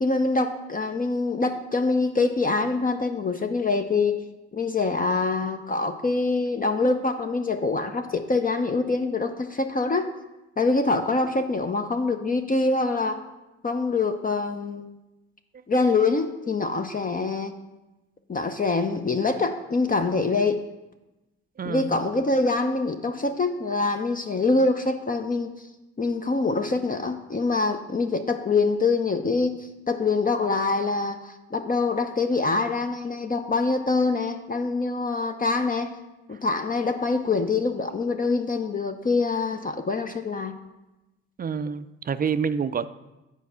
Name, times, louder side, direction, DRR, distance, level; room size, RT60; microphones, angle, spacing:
voice 1, 0.0-4.2 4.5-10.1 10.6-13.2 13.6-14.9 15.7-17.5 18.3-20.6 21.6-25.5 26.0-35.9 36.3-40.6, left 3 dB, 25° left, 6 dB, 0.6 m, -25 dB
voice 2, 21.6-21.9 41.4-42.9, right 6 dB, 30° right, 13 dB, 0.4 m, -27 dB
8.2 x 4.5 x 5.6 m, 1.0 s
hypercardioid pair, 50°, 31 cm